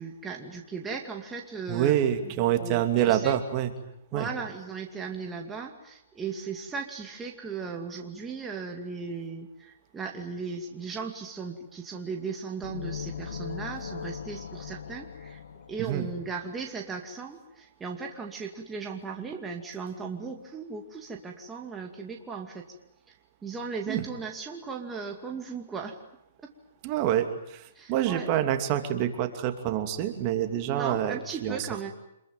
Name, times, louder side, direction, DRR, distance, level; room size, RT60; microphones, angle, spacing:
voice 1, 0.0-1.9 2.2-3.4 4.1-15.4 15.7-22.7 23.1-23.2 23.4-26.0 26.4-26.5 27.7-28.3 30.7-31.9, right 5 dB, 10° right, 1 dB, 2.4 m, -37 dB
voice 2, 1.7-3.7 4.1-4.3 15.8-16.1 23.9-24.0 26.8-31.6, right 11 dB, 35° right, 7 dB, 2.8 m, -27 dB
sound 1, 12.6-16.4, left 7 dB, 80° left, 1.5 m, -39 dB
26.5 x 22.5 x 9.3 m, 0.81 s
hypercardioid pair, 150°, 0 cm